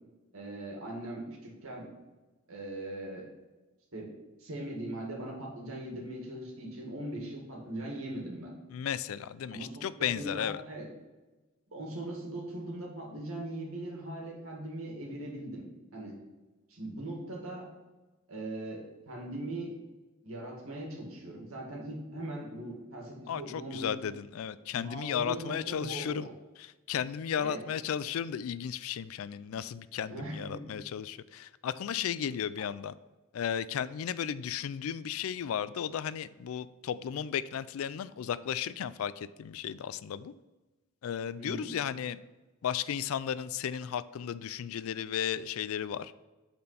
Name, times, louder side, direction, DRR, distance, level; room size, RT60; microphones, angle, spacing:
voice 1, 0.3-1.9 2.5-3.3 3.9-4.1 4.4-8.5 9.5-9.9 10.2-10.9 11.7-15.6 15.9-16.2 16.7-17.7 18.3-19.8 20.2-24.0 24.7-26.3 27.3-27.6 30.1-30.6 41.4-41.7, right 1 dB, 75° right, -1 dB, 2.1 m, -40 dB
voice 2, 8.7-10.6 23.3-26.3 26.6-32.9 33.3-40.3 41.0-42.2 42.6-46.1, left 8 dB, 75° left, 16 dB, 0.3 m, -34 dB
8.4 x 4.4 x 4.2 m, 1.2 s
head